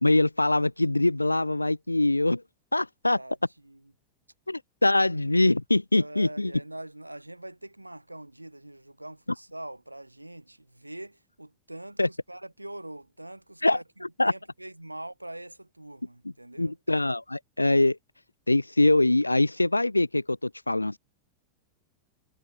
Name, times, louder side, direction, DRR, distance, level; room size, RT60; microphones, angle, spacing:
voice 1, 0.0-2.4 2.7-3.2 4.5-6.5 12.0-12.1 13.6-13.8 14.2-14.3 16.2-18.0 18.5-21.0, left 2 dB, 85° left, 0.6 m, -23 dB
voice 2, 5.9-16.8, right 1 dB, 85° right, 3.9 m, -43 dB
figure-of-eight pair, 90°, 0 cm